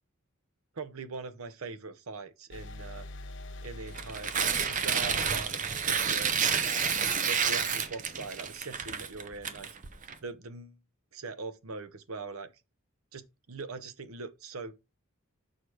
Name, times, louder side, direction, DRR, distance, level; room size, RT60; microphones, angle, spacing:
voice 1, 0.7-3.1 3.6-5.6 5.9-6.4 7.0-9.7 10.2-10.8 11.1-12.5 13.1-14.7, right 4 dB, 80° right, 0.8 m, -41 dB
sound 1, 2.5-6.2, left 1 dB, 55° left, 0.6 m, -46 dB
Tearing, 3.9-10.1, right 6 dB, 35° right, 0.8 m, -29 dB
6.6 x 4.9 x 4.6 m
head